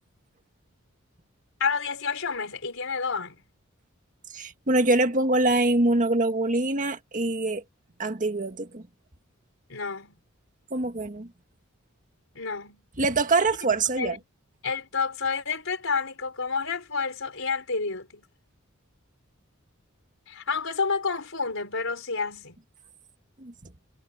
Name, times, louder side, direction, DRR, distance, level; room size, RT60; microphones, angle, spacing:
voice 1, 1.6-3.4 9.7-10.2 12.4-12.8 14.0-14.2 14.6-18.2 20.3-22.6, left 5 dB, 65° left, 5.3 m, -29 dB
voice 2, 4.3-7.6 8.0-8.9 10.7-11.3 13.0-14.2 23.4-23.5, right 2 dB, 40° right, 1.7 m, -24 dB
head